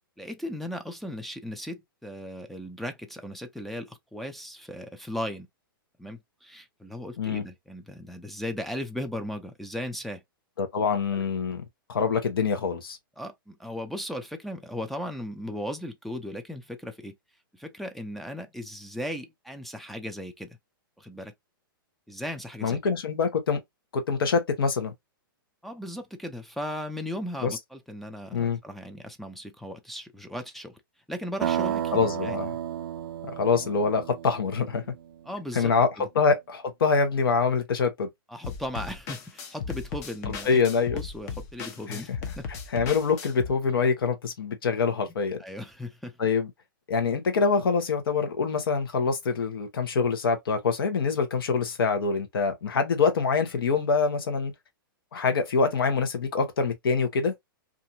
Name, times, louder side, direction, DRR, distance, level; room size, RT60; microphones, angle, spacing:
voice 1, 0.2-5.5 6.0-10.2 11.1-11.2 13.2-17.2 17.5-20.6 21.0-21.3 22.1-22.8 25.6-30.8 31.1-32.4 35.3-36.1 38.3-40.6 40.9-42.5 45.4-46.2, left 1 dB, ahead, 0.3 m, -37 dB
voice 2, 10.6-11.6 11.9-13.0 22.6-23.6 23.9-24.9 27.4-27.6 28.3-28.6 31.9-32.6 33.4-34.8 35.5-35.9 36.1-38.1 40.4-41.0 41.9-42.0 42.5-45.4 46.2-46.5 46.9-54.5 55.1-57.3, left 5 dB, 80° left, 1.0 m, -25 dB
sound 1, 31.4-35.2, right 10 dB, 75° right, 0.4 m, -32 dB
sound 2, 38.4-43.5, left 6 dB, 45° left, 0.8 m, -36 dB
2.6 x 2.5 x 2.6 m
hypercardioid pair, 140°, 12 cm